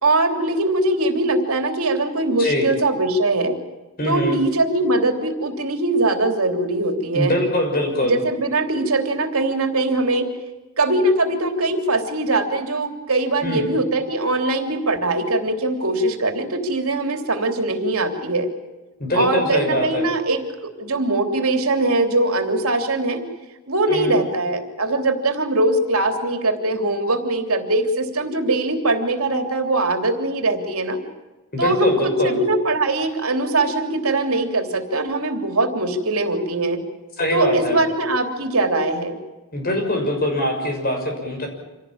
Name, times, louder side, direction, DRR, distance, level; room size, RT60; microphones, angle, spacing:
voice 1, 0.0-3.6 4.0-7.3 8.1-10.3 10.8-18.5 19.1-23.2 23.7-31.0 31.6-36.8 37.3-39.2, right 2 dB, 75° right, 5 dB, 3.3 m, -21 dB
voice 2, 4.0-4.4 7.1-8.2 13.4-13.7 19.0-20.0 23.9-24.2 31.5-32.4 37.2-37.8 39.5-41.5, left 1 dB, 40° left, 3 dB, 6.5 m, -23 dB
26.5 x 17.5 x 8.8 m, 1.1 s
head